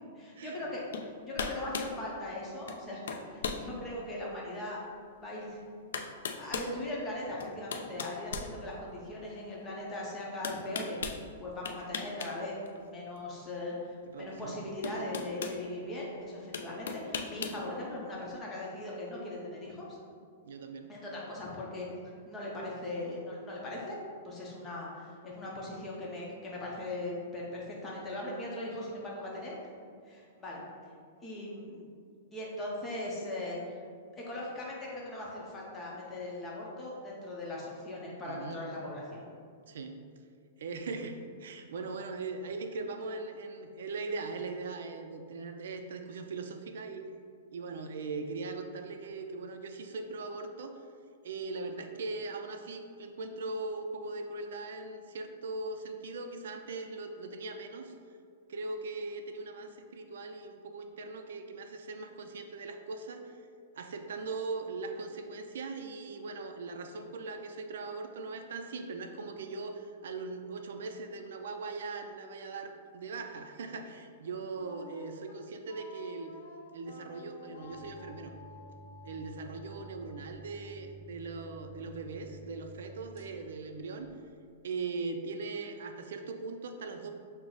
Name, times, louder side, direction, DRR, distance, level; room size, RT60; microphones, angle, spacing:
voice 1, 0.2-5.6 6.3-19.9 20.9-21.9 22.3-24.0 24.2-29.5 30.1-30.6 31.2-31.9 32.3-33.6 34.1-39.3, left 1 dB, 10° left, -4 dB, 0.7 m, -39 dB
sound 1, 0.9-1.1 1.4-1.9 2.7-2.8 3.1-3.6 4.2-4.3 5.4-5.5 5.9-6.7 7.4-9.1 10.4-11.2 11.6-12.3 12.6-12.8 14.2-14.3 14.8-15.6 16.5-17.6, left 5 dB, 85° left, 0.3 m, -37 dB
voice 2, 14.1-14.6 15.0-15.2 20.4-20.9 38.2-38.6 39.7-40.0 40.6-47.0 47.5-50.8 51.2-57.9 58.5-63.4 63.7-76.4 76.7-78.3 79.0-84.1 84.6-87.1, right 3 dB, 70° right, 6 dB, 0.3 m, -40 dB
Wind instrument woodwind instrument, 74.5-81.5, left 3 dB, 65° left, 0.7 m, -52 dB
sound 2, 77.6-84.6, right 1 dB, 20° right, 0.9 m, -52 dB
6.0 x 2.0 x 3.8 m, 2.2 s
supercardioid pair, 170°, 0 cm